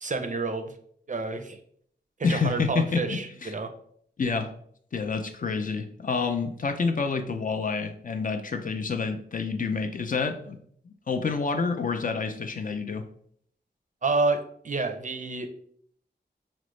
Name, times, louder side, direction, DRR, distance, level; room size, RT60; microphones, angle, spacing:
voice 1, 0.0-0.7 1.1-1.6 2.2-3.7 14.0-15.6, right 3 dB, 45° right, 7 dB, 0.4 m, -29 dB
voice 2, 2.2-3.5 4.2-4.5 4.9-10.6 10.9-13.1, left 4 dB, 50° left, 6 dB, 0.4 m, -28 dB
4.9 x 2.0 x 3.1 m, 0.63 s
wide cardioid pair, 80°, 18 cm